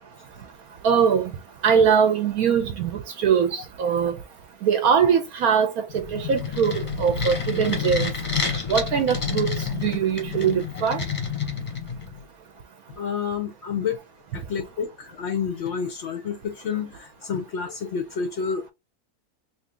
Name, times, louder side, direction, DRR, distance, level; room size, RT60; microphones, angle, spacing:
voice 1, 0.8-1.3 1.6-4.2 4.6-8.1 8.7-11.0, right 7 dB, 70° right, 1.0 m, -22 dB
sound 1, 5.9-12.2, left 6 dB, 25° left, 0.8 m, -29 dB
voice 2, 13.0-14.0 14.3-18.7, left 6 dB, 65° left, 0.7 m, -29 dB
3.1 x 2.6 x 3.4 m
omnidirectional pair, 1.7 m